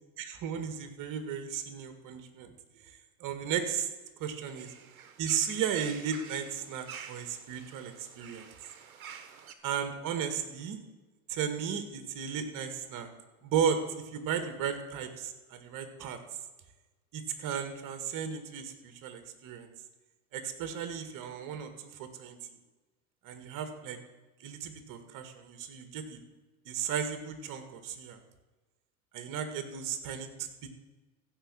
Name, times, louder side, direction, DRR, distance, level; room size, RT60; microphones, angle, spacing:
voice 1, 0.2-2.5 2.8-3.9 4.2-4.7 5.2-8.5 9.6-10.8 11.3-13.1 13.4-16.2 17.1-19.7 20.3-22.4 23.2-24.0 24.4-26.2 26.7-28.2 29.1-30.7, right 7 dB, 50° right, 8 dB, 2.0 m, -35 dB
sound 1, 4.4-9.5, right 7 dB, 80° right, 1.2 m, -49 dB
15.5 x 5.3 x 7.4 m, 1.2 s
hypercardioid pair, 80°, 42 cm